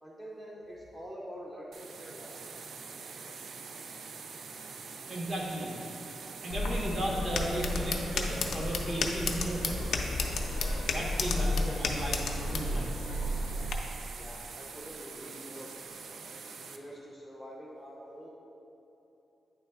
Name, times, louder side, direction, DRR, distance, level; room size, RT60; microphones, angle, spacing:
voice 1, 0.0-2.5 3.3-3.4 14.2-18.3, equal, 15° right, -6 dB, 0.6 m, -46 dB
sound 1, 1.7-16.8, right 4 dB, 65° right, 0.4 m, -45 dB
voice 2, 5.1-6.1 6.4-10.2 10.9-12.9, right 1 dB, 40° right, -3 dB, 1.0 m, -35 dB
sound 2, 6.5-13.8, left 2 dB, 75° left, 0.5 m, -32 dB
8.9 x 3.2 x 3.5 m, 3.0 s
wide cardioid pair, 130°, 0 cm